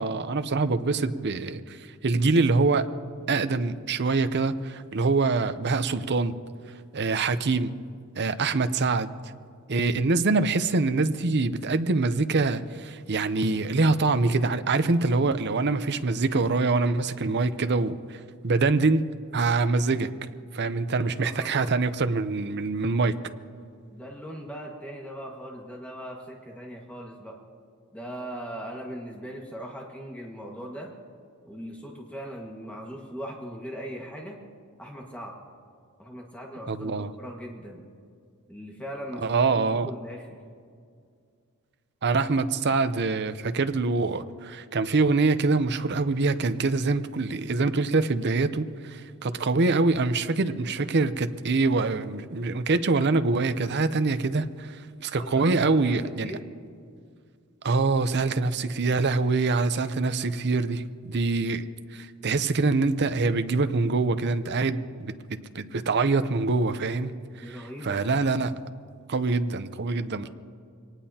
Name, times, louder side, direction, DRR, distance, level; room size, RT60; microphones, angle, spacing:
voice 1, 0.0-1.8 2.0-2.9 3.3-6.3 6.9-7.7 8.2-9.1 9.7-19.0 19.3-20.1 20.5-23.1 36.7-37.1 39.2-39.9 42.0-56.3 57.6-61.6 61.9-65.1 65.5-67.1 67.5-68.5 69.1-70.3, right 3 dB, 50° right, 0.7 m, -25 dB
voice 2, 21.0-21.8 23.9-27.4 27.9-30.9 31.4-34.4 34.8-35.4 36.0-37.8 38.5-39.2 39.5-40.4 55.1-56.0 56.2-56.4 67.4-68.0 70.2-70.3, equal, 5° left, 1.7 m, -39 dB
25.0 x 19.0 x 2.9 m
head